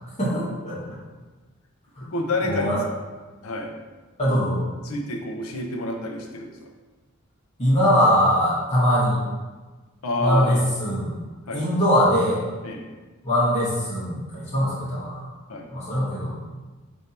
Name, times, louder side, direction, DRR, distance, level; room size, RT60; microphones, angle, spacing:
voice 1, 0.2-0.8 2.0-2.1 2.4-2.8 4.2-4.6 7.6-9.2 10.2-11.1 11.5-12.4 13.2-15.2 15.7-16.3, equal, 30° left, -9 dB, 1.5 m, -21 dB
voice 2, 2.0-2.7 3.4-3.8 4.8-6.5 10.0-10.6 11.5-11.6 12.6-12.8 15.5-15.7, left 1 dB, 75° left, 2 dB, 0.5 m, -28 dB
3.3 x 2.7 x 4.1 m, 1.3 s
head